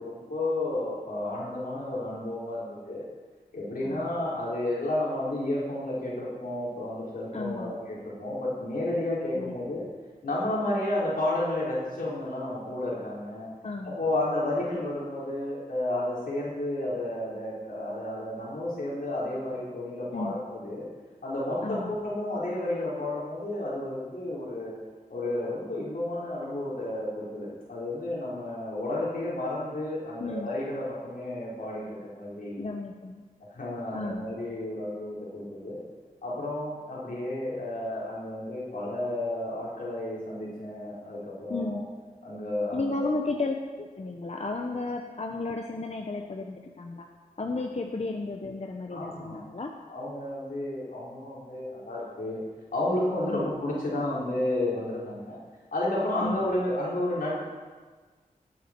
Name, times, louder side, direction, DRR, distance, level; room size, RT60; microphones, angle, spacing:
voice 1, 0.0-3.1 3.5-9.9 10.2-13.5 13.8-20.9 21.2-24.8 25.1-32.7 33.5-35.8 36.2-41.8 42.2-43.1 48.9-49.4 49.9-52.4 52.7-55.4 55.7-57.4, left 1 dB, 80° left, -7 dB, 4.6 m, -31 dB
voice 2, 7.3-7.8 9.4-9.5 13.6-14.0 20.1-20.4 21.6-21.9 30.2-30.5 32.6-33.2 33.9-34.3 41.5-41.8 42.7-47.1 47.4-49.7 53.3-53.5 56.2-56.5, left 3 dB, 45° left, 2 dB, 1.0 m, -33 dB
18.0 x 8.4 x 4.6 m, 1.4 s
wide cardioid pair, 70°, 15 cm